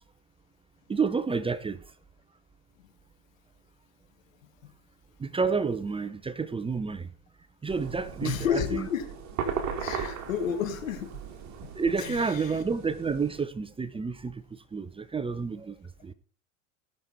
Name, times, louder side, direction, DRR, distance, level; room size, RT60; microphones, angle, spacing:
voice 1, 0.9-1.9 5.2-7.1 7.6-8.9 11.7-16.1, right 5 dB, 15° right, 0.7 m, -30 dB
sound 1, 7.7-13.4, right 7 dB, 45° right, 2.4 m, -37 dB
voice 2, 8.2-9.1 9.8-11.1 11.6-11.7 12.0-12.5, left 8 dB, 80° left, 2.2 m, -31 dB
17.5 x 6.8 x 4.2 m
hypercardioid pair, 85°, 39 cm